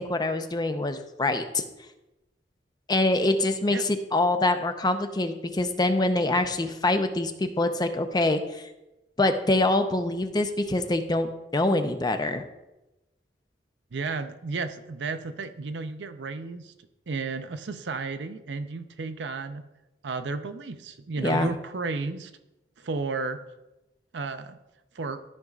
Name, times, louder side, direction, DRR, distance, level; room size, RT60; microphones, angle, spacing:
voice 1, 0.0-1.6 2.9-8.6 9.2-12.4 21.2-21.5, left 2 dB, 25° left, 8 dB, 0.5 m, -25 dB
voice 2, 13.9-16.7 17.1-19.6 20.0-22.3 22.8-23.4 24.1-24.6 24.9-25.2, right 4 dB, 80° right, 9 dB, 0.6 m, -33 dB
13.0 x 5.3 x 2.4 m, 0.97 s
head